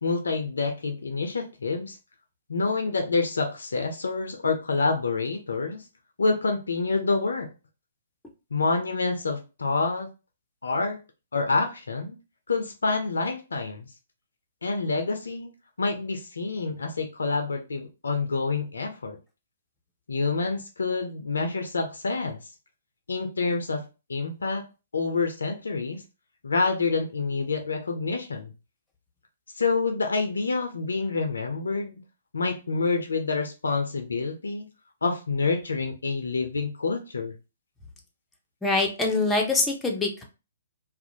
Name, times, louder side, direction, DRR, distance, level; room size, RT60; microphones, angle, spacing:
voice 1, 0.0-2.0 2.5-5.8 6.2-7.5 8.5-10.1 10.6-11.0 11.3-12.2 12.5-13.9 14.6-15.5 15.8-19.2 20.1-22.4 23.1-23.8 24.1-24.6 24.9-26.0 26.4-28.5 29.6-32.0 32.3-34.7 35.0-37.3, left 4 dB, 75° left, 4 dB, 0.4 m, -27 dB
voice 2, 38.6-40.2, left 3 dB, 10° left, 1 dB, 0.6 m, -24 dB
2.4 x 2.0 x 2.7 m, 0.30 s
figure-of-eight pair, 125°, 0 cm